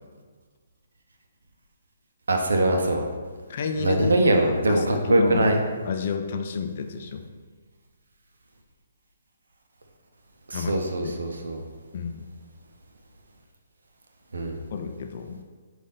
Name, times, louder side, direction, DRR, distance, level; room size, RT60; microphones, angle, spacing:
voice 1, 2.3-3.1 3.8-5.6 10.5-11.6 14.3-14.6, right 1 dB, 80° right, 3 dB, 0.6 m, -22 dB
voice 2, 3.5-5.5 5.9-7.3 10.5-11.2 11.9-12.2 14.7-15.4, left 5 dB, 50° left, 6 dB, 0.4 m, -31 dB
5.2 x 2.6 x 3.8 m, 1.5 s
hypercardioid pair, 145°, 0 cm